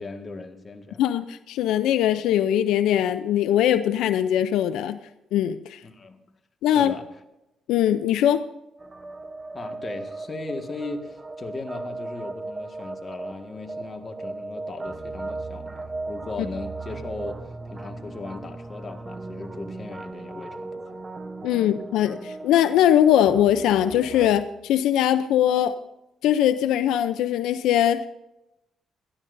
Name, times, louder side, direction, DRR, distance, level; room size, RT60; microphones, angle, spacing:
voice 1, 0.0-1.0 5.8-6.2 6.7-7.1 9.5-21.0, left 3 dB, 35° left, 5 dB, 1.7 m, -37 dB
voice 2, 1.0-5.0 5.3-5.8 6.6-6.9 7.7-8.4 21.4-25.7 26.2-28.0, left 11 dB, 90° left, 11 dB, 0.5 m, -21 dB
sound 1, 8.8-24.4, right 3 dB, 25° right, 1.0 m, -37 dB
21.0 x 13.5 x 2.6 m, 0.91 s
cardioid pair, 90°, 0 cm